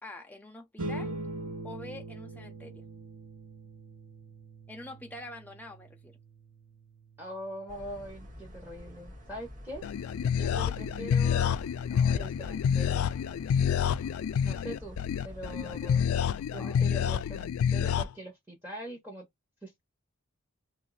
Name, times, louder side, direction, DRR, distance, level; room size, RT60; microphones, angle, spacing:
voice 1, 0.0-1.2 1.6-2.8 4.7-6.2 16.6-17.0, left 2 dB, 10° left, 0.7 m, -45 dB
sound 1, 0.8-11.5, right 2 dB, 85° right, 1.0 m, -44 dB
voice 2, 7.2-9.8 10.4-11.6 11.9-13.0 14.4-15.0 15.2-16.1 16.5-19.3 19.6-19.9, equal, 10° right, 1.1 m, -42 dB
sound 2, 7.7-16.3, equal, 40° right, 1.6 m, -47 dB
sound 3, 9.8-18.0, left 8 dB, 80° left, 0.3 m, -28 dB
2.7 x 2.6 x 4.0 m
head